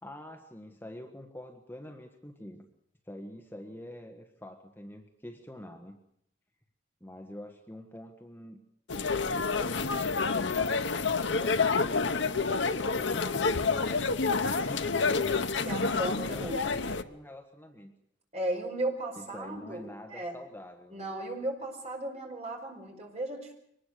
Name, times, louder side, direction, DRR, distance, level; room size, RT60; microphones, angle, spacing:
voice 1, 0.0-2.6 3.0-6.0 7.0-8.6 9.2-11.0 11.4-14.1 14.5-15.5 16.3-17.9 19.2-21.1, left 1 dB, 10° left, 4 dB, 1.5 m, -46 dB
sound 1, 8.9-17.0, left 4 dB, 70° left, 1.0 m, -28 dB
voice 2, 15.6-16.6 18.3-20.3 20.9-23.5, right 1 dB, 35° right, 2 dB, 5.0 m, -35 dB
24.0 x 19.5 x 6.6 m, 0.72 s
head